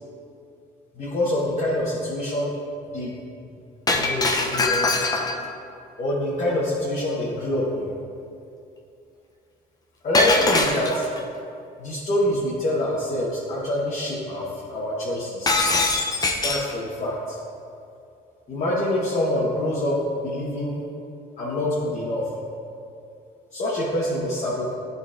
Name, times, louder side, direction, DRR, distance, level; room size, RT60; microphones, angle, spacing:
voice 1, 0.9-2.5 2.9-3.1 3.4-3.5 3.9-4.9 6.0-7.9 10.0-11.1 11.8-15.6 16.4-17.4 18.5-20.8 21.4-22.2 23.5-24.7, left 1 dB, 40° left, -7 dB, 1.1 m, -25 dB
Shatter, 3.9-5.5 10.1-11.2 15.5-16.7, left 2 dB, 20° left, 0.6 m, -22 dB
11.0 x 3.9 x 2.5 m, 2.6 s
cardioid pair, 110°, 17 cm